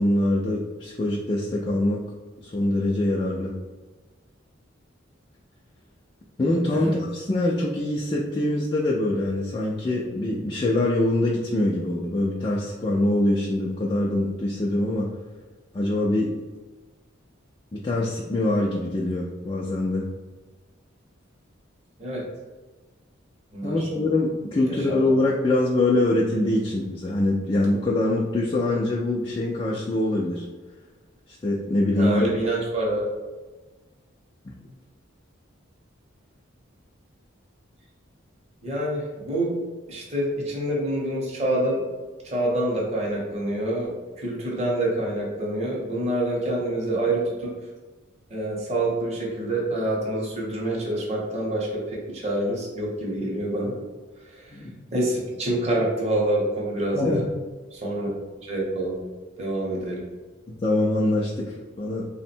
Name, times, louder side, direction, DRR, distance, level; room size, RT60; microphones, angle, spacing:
voice 1, 0.0-2.0 2.4-3.5 6.4-15.1 15.7-16.3 17.7-20.0 23.6-30.5 31.3-32.3 34.4-34.5 54.5-54.7 56.9-57.2 60.5-62.1, left 1 dB, 25° left, -4 dB, 0.3 m, -24 dB
voice 2, 23.5-23.9 24.6-24.9 32.0-33.1 38.6-39.5 39.9-41.8 42.2-43.9 44.2-47.5 48.3-53.7 54.2-54.5 54.9-57.2 57.7-58.1 58.4-59.0 59.4-60.0, right 1 dB, 30° right, -3 dB, 0.8 m, -26 dB
3.6 x 2.1 x 4.2 m, 1.3 s
head